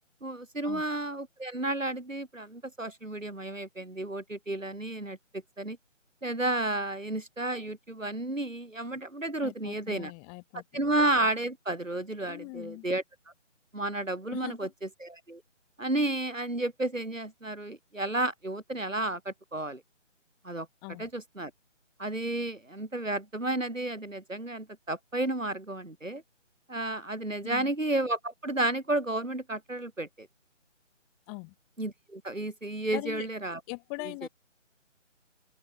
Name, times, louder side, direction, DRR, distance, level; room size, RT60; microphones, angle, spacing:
voice 1, 0.2-5.8 6.2-10.1 10.7-13.0 13.7-15.4 15.8-19.8 20.4-20.7 21.0-21.5 22.0-26.2 26.7-30.3 31.8-33.6 34.2-34.3, right 2 dB, 85° right, 7.4 m, -32 dB
voice 2, 9.4-10.9 12.3-12.8 14.3-14.7 20.8-21.1 27.4-27.7 31.3-31.5 32.9-33.3 33.7-34.3, left 40 dB or more, 15° left, 6.6 m, -41 dB
open air
figure-of-eight pair, 155°, 38 cm